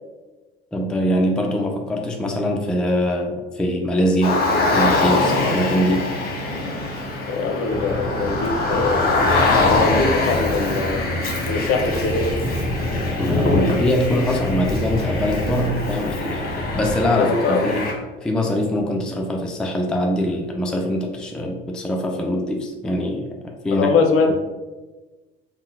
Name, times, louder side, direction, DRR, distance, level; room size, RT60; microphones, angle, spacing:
voice 1, 0.7-4.4 4.7-6.1 13.2-23.9 24.3-24.4, equal, 5° left, 1 dB, 0.4 m, -23 dB
Car, 4.2-17.9, left 2 dB, 30° left, 1.0 m, -23 dB
voice 2, 7.3-9.1 9.6-11.0 11.5-12.3 17.1-17.8 23.7-24.4, left 4 dB, 50° left, 4 dB, 0.6 m, -22 dB
sound 1, 7.7-16.9, left 1 dB, 35° right, 1.3 m, -28 dB
3.6 x 2.2 x 3.8 m, 1.2 s
figure-of-eight pair, 55°, 30 cm